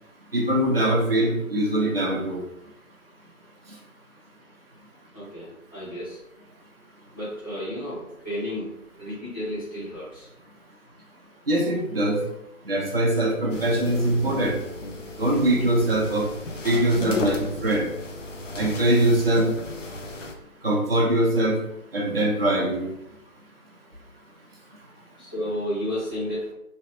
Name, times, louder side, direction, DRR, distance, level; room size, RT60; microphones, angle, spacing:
voice 1, 0.3-2.4 11.5-12.2 12.7-14.6 15.2-16.3 16.6-17.9 18.5-19.5 20.6-21.6 21.9-22.9, right 1 dB, 45° right, -2 dB, 0.5 m, -22 dB
voice 2, 5.1-6.2 7.1-8.7 9.0-10.3 25.2-26.5, left 1 dB, 15° left, -13 dB, 0.9 m, -32 dB
sound 1, 13.5-20.3, left 3 dB, 60° left, 0.5 m, -34 dB
3.0 x 2.6 x 2.9 m, 0.86 s
figure-of-eight pair, 155°, 44 cm